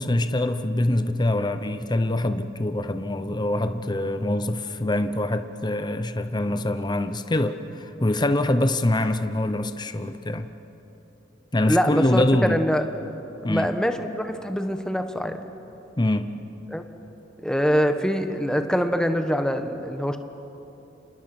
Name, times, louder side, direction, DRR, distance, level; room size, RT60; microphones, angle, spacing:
voice 1, 0.0-10.5 11.5-12.6 13.4-13.7 16.0-16.3, left 1 dB, 20° left, 9 dB, 0.8 m, -24 dB
voice 2, 11.7-12.9 13.4-15.4 16.7-16.8 17.4-20.2, equal, 5° left, 7 dB, 1.3 m, -24 dB
30.0 x 27.5 x 6.1 m, 3.0 s
head